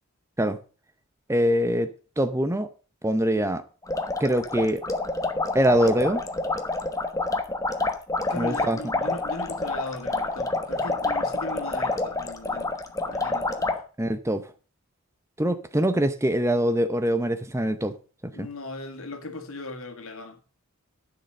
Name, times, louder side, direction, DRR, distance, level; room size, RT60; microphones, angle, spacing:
voice 1, 1.3-1.9 2.2-2.7 3.0-3.6 4.2-4.8 5.5-6.2 8.3-8.8 14.0-14.5 15.4-18.0 18.4-18.5, equal, 10° right, 0.6 m, -23 dB
sound 1, 3.8-13.8, left 2 dB, 15° left, 1.1 m, -28 dB
voice 2, 8.3-13.7 18.3-20.4, left 2 dB, 70° left, 2.1 m, -38 dB
11.5 x 6.7 x 6.6 m
head